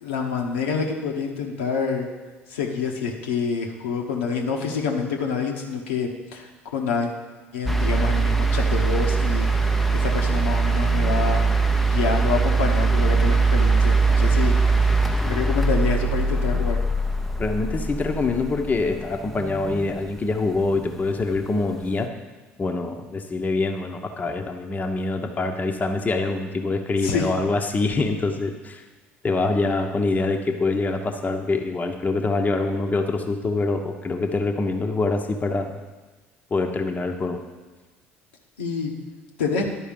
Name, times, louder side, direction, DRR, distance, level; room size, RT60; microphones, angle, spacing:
voice 1, 0.0-2.1 2.5-7.1 7.5-9.5 9.9-11.4 11.9-14.9 15.2-16.8 27.0-27.3 38.6-38.9 39.4-39.7, left 5 dB, 75° left, 1 dB, 1.0 m, -27 dB
sound 1, 7.7-19.9 21.2-21.3, right 3 dB, ahead, 0.6 m, -21 dB
voice 2, 17.4-22.1 22.6-28.8 29.2-35.8 36.5-37.4, left 3 dB, 25° left, 4 dB, 0.9 m, -25 dB
11.0 x 4.7 x 5.1 m, 1.2 s
figure-of-eight pair, 60°, 6 cm